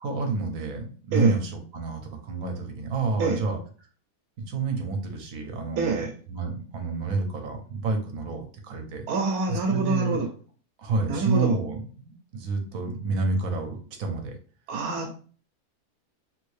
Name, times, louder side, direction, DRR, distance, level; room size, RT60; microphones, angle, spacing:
voice 1, 0.0-3.6 4.5-9.1 9.5-10.2 10.8-14.3, right 3 dB, 70° right, 1.1 m, -29 dB
voice 2, 5.8-6.1 9.1-10.3 11.1-11.5 14.7-15.1, right 3 dB, 90° right, 1.1 m, -26 dB
3.1 x 2.6 x 3.1 m
omnidirectional pair, 1.5 m